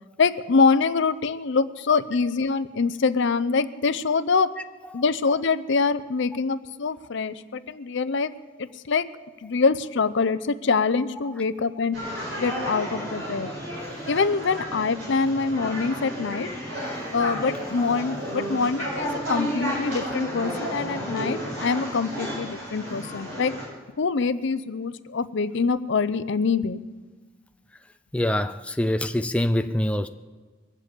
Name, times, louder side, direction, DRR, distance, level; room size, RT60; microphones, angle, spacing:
voice 1, 0.2-4.5 4.9-8.3 8.6-9.1 9.4-12.0 12.4-13.5 14.1-16.5 17.1-23.5 24.0-26.8, left 4 dB, 60° left, 0.6 m, -24 dB
sound 1, 11.9-23.7, equal, 70° right, 6.4 m, -32 dB
voice 2, 28.1-30.1, left 1 dB, 5° left, 0.4 m, -24 dB
22.0 x 7.5 x 8.3 m
head